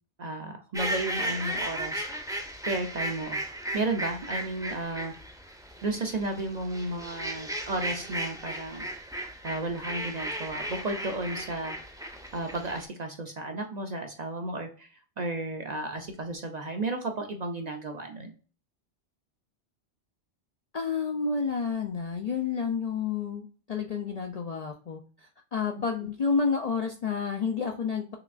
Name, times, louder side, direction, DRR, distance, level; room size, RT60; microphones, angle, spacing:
voice 1, 0.2-2.0 2.7-3.4 3.7-5.1 5.8-9.1 9.4-11.8 12.3-18.3, right 2 dB, 50° right, 4 dB, 0.6 m, -33 dB
sound 1, 0.7-12.8, right 1 dB, 5° right, 0.5 m, -35 dB
voice 2, 20.7-25.0 25.5-28.0, left 5 dB, 55° left, 3 dB, 0.4 m, -29 dB
5.8 x 3.1 x 2.5 m, 0.38 s
omnidirectional pair, 1.2 m